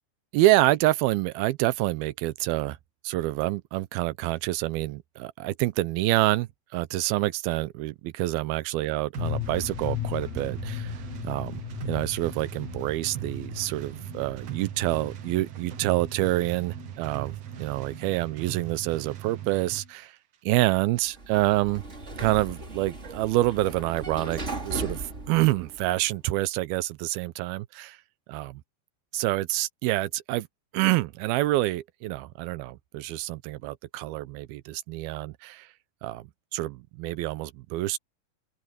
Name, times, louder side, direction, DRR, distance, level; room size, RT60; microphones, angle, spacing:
voice 1, 0.3-2.8 3.0-11.0 11.2-11.6 11.9-20.2 20.4-21.8 22.2-28.0 28.3-28.5 29.1-30.5 30.7-35.7 36.0-36.2 36.5-38.0, right 17 dB, 90° right, 2.7 m, -27 dB
sound 1, 9.1-18.8 19.0-19.1 19.4-19.5, left 16 dB, 70° left, 1.8 m, -38 dB
sound 2, 9.1-19.9, right 14 dB, 55° right, 2.0 m, -39 dB
Sliding door, 20.9-26.2, right 2 dB, 20° right, 2.6 m, -37 dB
open air
omnidirectional pair, 4.3 m